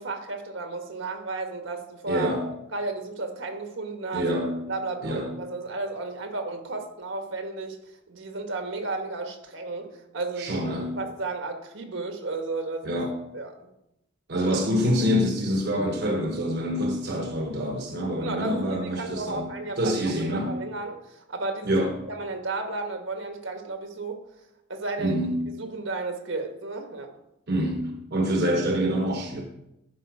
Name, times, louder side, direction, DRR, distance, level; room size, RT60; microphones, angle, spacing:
voice 1, 0.0-4.3 4.7-7.8 8.1-9.9 10.1-13.0 13.3-13.5 18.2-21.7 22.1-24.2 24.7-25.2 25.6-27.1, right 3 dB, 75° right, 5 dB, 1.4 m, -33 dB
voice 2, 2.1-2.4 4.1-4.7 5.0-5.3 10.4-11.0 12.8-13.1 14.3-19.5 19.8-20.5 21.7-21.9 25.0-25.4 27.5-29.4, equal, 55° right, 3 dB, 1.0 m, -26 dB
11.5 x 5.4 x 4.8 m, 0.84 s
head